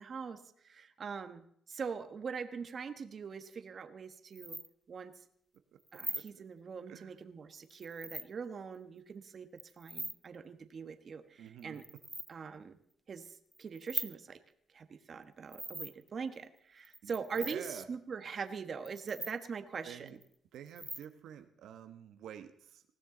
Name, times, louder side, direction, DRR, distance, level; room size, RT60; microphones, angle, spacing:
voice 1, 0.0-4.6 4.9-5.2 5.9-9.5 9.8-11.8 12.3-12.8 13.1-14.4 14.7-20.2, right 5 dB, 45° right, 9 dB, 1.4 m, -42 dB
sound 1, 4.3-4.7 5.9-6.3 7.7-8.3 9.6-10.2 11.6-12.3 13.3-14.1 15.5-16.1 16.8-17.7 18.9-19.3 20.1-20.2 20.7-21.1, right 1 dB, 10° right, 0.5 m, -41 dB
voice 2, 6.1-6.4 6.9-7.1 11.4-11.8 17.0-17.1 17.4-17.8 19.8-20.2 20.5-22.8, right 9 dB, 75° right, 8 dB, 1.1 m, -49 dB
20.0 x 16.0 x 3.9 m, 0.67 s
cardioid pair, 115°, 0 cm